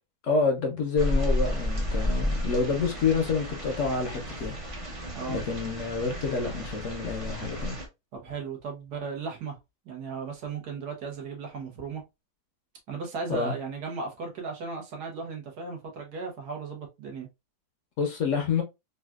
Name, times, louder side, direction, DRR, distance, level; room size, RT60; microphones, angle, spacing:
voice 1, 0.2-4.5 5.3-7.8 13.3-13.5 18.0-18.6, left 4 dB, 60° left, 0.9 m, -28 dB
sound 1, 1.0-7.9, equal, 35° right, 0.5 m, -31 dB
voice 2, 5.1-5.5 8.1-9.6 9.8-12.0 12.9-17.3, right 4 dB, 75° right, 1.5 m, -36 dB
4.0 x 2.3 x 2.3 m
omnidirectional pair, 1.7 m